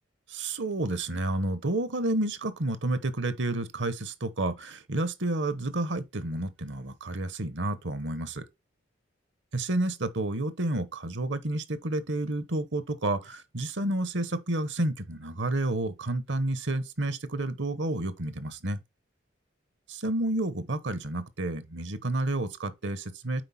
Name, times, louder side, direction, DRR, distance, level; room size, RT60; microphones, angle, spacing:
voice 1, 0.3-8.4 9.5-18.8 19.9-23.4, right 2 dB, 65° right, 1.2 m, -30 dB
7.6 x 5.0 x 4.3 m
head